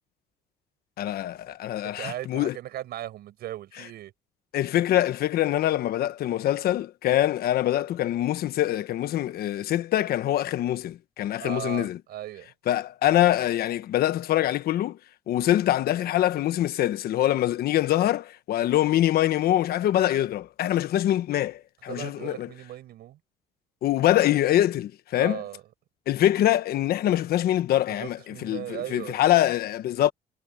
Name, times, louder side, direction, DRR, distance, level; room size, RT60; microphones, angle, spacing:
voice 1, 1.0-2.6 4.5-12.0 12.7-15.0 15.3-22.5 23.8-25.4 26.1-30.1, left 13 dB, 65° left, 1.2 m, -24 dB
voice 2, 2.0-4.1 11.4-12.5 21.9-23.2 25.2-25.6 27.9-29.2, right 13 dB, 70° right, 6.2 m, -37 dB
cardioid pair, 110°, 17 cm